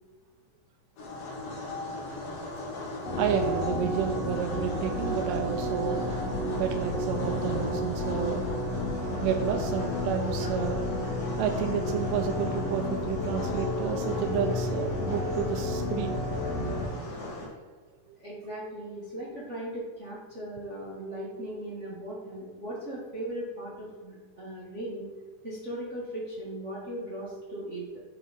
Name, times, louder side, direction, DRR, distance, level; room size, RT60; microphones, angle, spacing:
sound 1, 1.0-17.5, left 2 dB, 75° left, 3.6 m, -39 dB
sound 2, 3.0-16.9, left 1 dB, 50° left, 2.6 m, -31 dB
voice 1, 3.2-6.0 6.6-8.4 9.2-10.8 11.4-16.2, right 8 dB, 80° right, 4 dB, 2.0 m, -30 dB
voice 2, 18.2-25.1 25.4-28.0, right 1 dB, 65° right, -7 dB, 0.7 m, -38 dB
9.9 x 3.7 x 4.0 m, 1.4 s
omnidirectional pair, 3.9 m